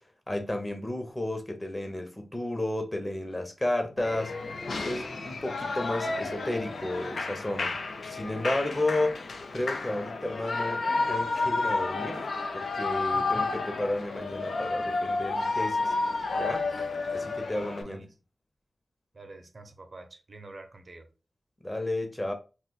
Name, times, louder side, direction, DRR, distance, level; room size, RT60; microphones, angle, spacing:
voice 1, 0.3-4.3 4.8-7.8 8.1-9.2 9.5-12.2 12.5-15.9 16.3-16.7 17.1-18.0 21.6-22.3, left 1 dB, 25° left, 0.8 m, -32 dB
Shout / Cheering, 4.0-17.8, left 3 dB, 80° left, 0.4 m, -31 dB
voice 2, 13.1-13.5 17.6-18.1 19.1-21.1, right 3 dB, 55° right, 0.6 m, -47 dB
2.5 x 2.3 x 4.0 m
cardioid pair, 60°, 0 cm